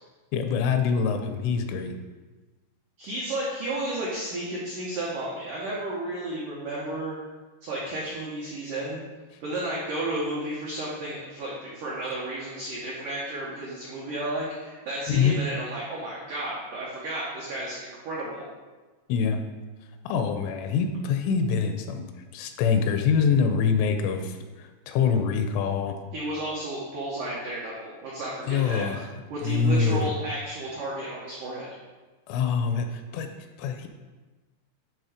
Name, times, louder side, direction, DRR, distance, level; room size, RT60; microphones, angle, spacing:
voice 1, 0.3-1.9 15.1-15.4 19.1-19.4 20.0-22.1 22.3-26.0 28.5-29.1 29.4-30.1 32.3-33.3 33.6-33.9, left 6 dB, 80° left, 6 dB, 3.0 m, -25 dB
voice 2, 3.0-7.2 7.6-9.0 9.4-18.5 26.1-28.9 29.3-31.7, right 1 dB, 80° right, -6 dB, 1.8 m, -32 dB
11.0 x 3.8 x 5.0 m, 1.3 s
omnidirectional pair, 5.7 m